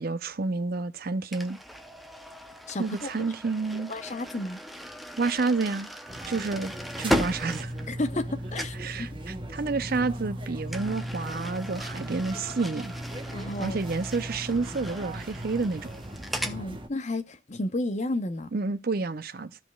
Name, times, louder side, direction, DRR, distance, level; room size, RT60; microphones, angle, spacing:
voice 1, 0.0-1.6 2.8-3.9 5.2-5.9 6.3-7.7 8.8-12.9 13.6-15.9 18.5-19.6, right 3 dB, 50° right, 0.6 m, -29 dB
sound 1, 1.3-8.3 8.5-8.9 10.7-16.6, equal, ahead, 0.6 m, -37 dB
voice 2, 2.7-3.1 3.7-4.6 7.9-9.1 13.3-13.8 16.4-18.5, left 2 dB, 35° left, 0.8 m, -32 dB
sound 2, 6.1-16.9, right 1 dB, 25° right, 0.9 m, -38 dB
14.0 x 5.2 x 2.3 m
head